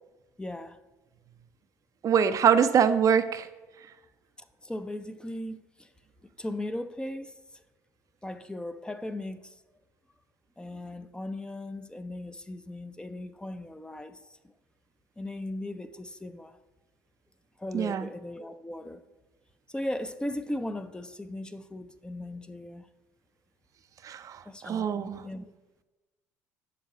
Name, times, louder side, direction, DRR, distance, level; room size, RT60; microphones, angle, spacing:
voice 1, 0.4-0.8 4.6-5.9 6.4-7.4 8.2-9.6 10.6-14.2 15.2-16.6 17.6-19.0 19.7-22.9 24.4-25.5, left 1 dB, 10° left, 0.6 m, -37 dB
voice 2, 2.0-3.5 17.7-18.1 24.0-25.2, right 8 dB, 45° right, 0.5 m, -24 dB
7.6 x 5.5 x 6.0 m
hypercardioid pair, 60°, 8 cm